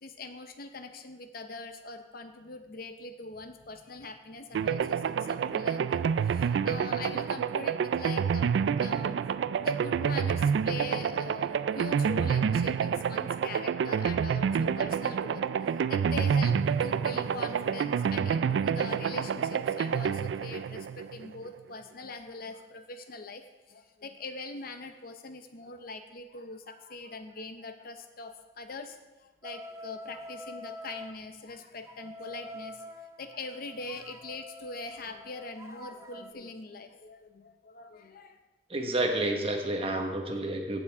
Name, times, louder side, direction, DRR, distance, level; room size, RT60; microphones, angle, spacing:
voice 1, 0.0-8.5 8.8-9.3 9.6-32.8 33.2-38.4, left 3 dB, 55° left, 7 dB, 0.8 m, -42 dB
sound 1, 4.5-21.5, right 7 dB, 80° right, 0.3 m, -28 dB
sound 2, 29.4-31.2 31.9-36.3, left 1 dB, 15° right, 0.5 m, -46 dB
voice 2, 38.7-40.8, right 1 dB, 35° right, 3 dB, 1.2 m, -30 dB
15.5 x 7.1 x 3.6 m, 1.1 s
head